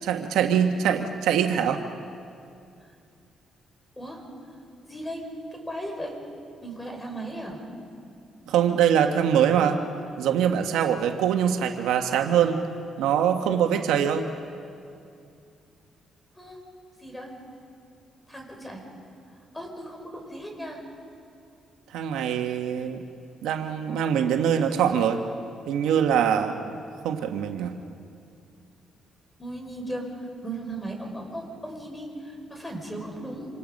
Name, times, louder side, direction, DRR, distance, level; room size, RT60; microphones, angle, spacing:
voice 1, 0.1-1.8 8.5-9.8 10.2-12.6 13.0-14.3 21.9-23.0 23.4-25.2 25.7-26.6 27.0-27.7, right 8 dB, 90° right, 5 dB, 1.4 m, -23 dB
voice 2, 4.8-5.2 5.6-6.1 6.6-7.6 16.4-16.6 17.0-17.3 18.3-18.8 19.5-20.8 29.4-33.5, right 1 dB, 10° left, 2 dB, 5.6 m, -36 dB
27.0 x 27.0 x 5.4 m, 2.5 s
cardioid pair, 90°, 0 cm